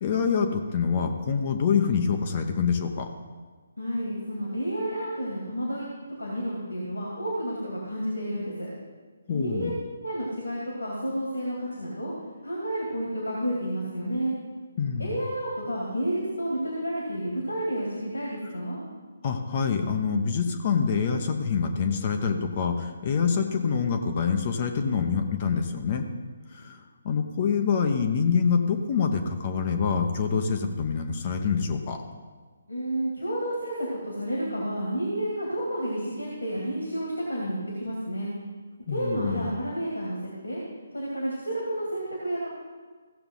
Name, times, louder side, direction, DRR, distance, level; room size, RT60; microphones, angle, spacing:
voice 1, 0.0-3.1 9.3-9.7 14.8-15.1 19.2-26.1 26.5-32.0 38.9-39.5, left 6 dB, 35° left, 4 dB, 0.9 m, -26 dB
voice 2, 3.8-5.9 6.2-8.7 9.3-9.7 10.0-12.1 12.4-14.3 15.0-18.8 32.7-38.3 38.9-40.6 40.9-42.5, right 1 dB, 80° left, -4 dB, 2.5 m, -30 dB
16.0 x 6.9 x 3.9 m, 1.4 s
figure-of-eight pair, 140°, 0 cm